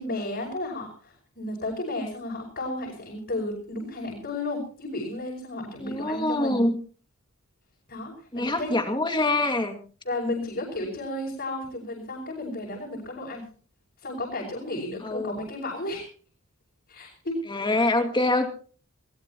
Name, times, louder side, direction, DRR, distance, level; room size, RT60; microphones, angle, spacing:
voice 1, 0.0-6.6 7.9-8.7 10.0-13.4 14.0-16.1 16.9-17.6, left 1 dB, 50° left, -2 dB, 6.0 m, -33 dB
voice 2, 5.8-6.8 8.3-9.8 15.0-15.3 17.5-18.5, left 2 dB, 20° left, 6 dB, 2.3 m, -25 dB
21.0 x 19.5 x 3.0 m, 0.42 s
head